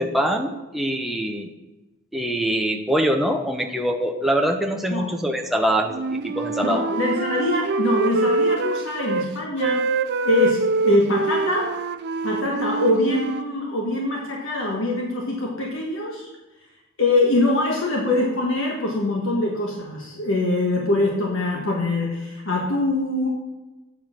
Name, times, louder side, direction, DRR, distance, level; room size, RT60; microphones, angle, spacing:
voice 1, 0.0-1.5 2.1-6.8, equal, ahead, 2 dB, 0.6 m, -23 dB
Wind instrument woodwind instrument, 5.9-9.3 9.6-13.5, right 3 dB, 50° right, 0.5 m, -25 dB
voice 2, 6.6-9.9 10.2-11.7 12.2-16.3 17.0-23.3, left 2 dB, 60° left, -1 dB, 1.3 m, -23 dB
8.5 x 6.2 x 5.8 m, 1.1 s
head